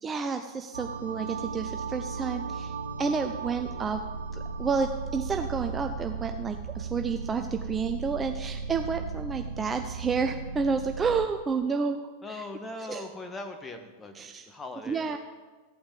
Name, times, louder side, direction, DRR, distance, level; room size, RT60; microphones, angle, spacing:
voice 1, 0.0-4.0 4.3-12.4 12.9-13.0 14.1-14.5 14.9-15.2, right 5 dB, 20° right, 6 dB, 0.6 m, -30 dB
sound 1, 0.7-11.3, right 4 dB, 80° right, 0.7 m, -36 dB
voice 2, 12.2-15.2, left 2 dB, 15° left, 4 dB, 1.5 m, -40 dB
15.5 x 8.6 x 3.9 m, 1.3 s
figure-of-eight pair, 90°, 0 cm